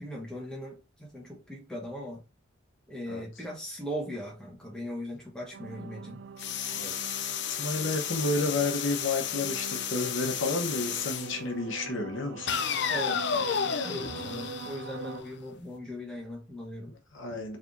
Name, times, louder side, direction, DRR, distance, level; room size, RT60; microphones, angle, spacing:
voice 1, 0.0-2.2 2.9-6.2 12.9-16.9, equal, 5° left, 1.4 m, -39 dB
sound 1, 5.5-15.2, right 6 dB, 60° right, 0.4 m, -43 dB
sound 2, 6.4-11.4 12.5-15.4, left 8 dB, 60° left, 0.5 m, -32 dB
voice 2, 7.5-12.5 17.1-17.6, left 2 dB, 80° left, 1.1 m, -31 dB
4.6 x 3.5 x 2.7 m
head